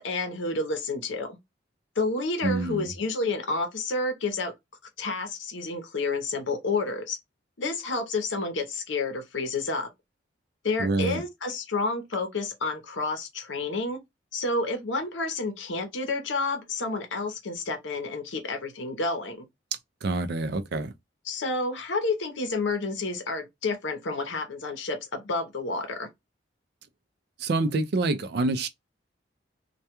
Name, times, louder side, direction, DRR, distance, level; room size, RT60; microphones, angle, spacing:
voice 1, 0.0-1.4 2.0-4.5 5.0-7.2 7.6-9.9 10.6-14.0 14.3-19.4 21.3-26.1, left 3 dB, 80° left, 0.7 m, -30 dB
voice 2, 2.4-2.9 10.8-11.2 20.0-20.9 27.4-28.7, right 2 dB, 55° right, 0.4 m, -26 dB
2.2 x 2.2 x 2.8 m
head